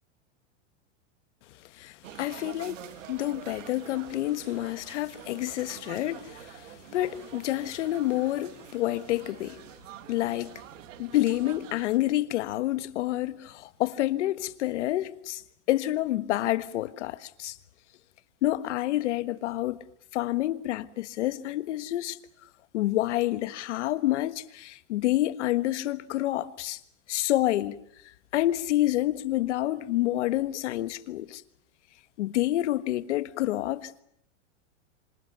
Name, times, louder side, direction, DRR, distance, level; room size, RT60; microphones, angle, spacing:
voice 1, 1.7-2.8 3.1-9.6 10.1-10.6 11.0-15.4 15.7-17.6 18.4-19.8 20.1-22.2 22.7-26.8 27.1-27.8 28.3-31.4 32.2-34.0, left 15 dB, 70° left, 1.5 m, -28 dB
sound 1, 2.0-12.0, right 12 dB, 85° right, 1.4 m, -46 dB
26.5 x 26.5 x 6.8 m
supercardioid pair, 160°, 37 cm